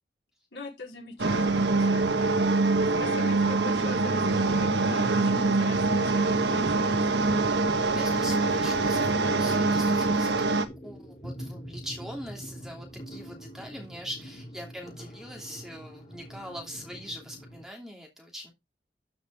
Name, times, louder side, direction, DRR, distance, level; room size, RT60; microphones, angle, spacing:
voice 1, 0.5-2.6 3.0-7.2, left 2 dB, 75° left, 4.2 m, -43 dB
sound 1, 0.8-17.7, equal, 40° left, 3.0 m, -45 dB
sound 2, 1.2-10.7, right 3 dB, 75° right, 1.3 m, -24 dB
voice 2, 7.8-10.3 10.8-18.5, equal, 5° right, 2.8 m, -41 dB
13.0 x 5.6 x 3.6 m
head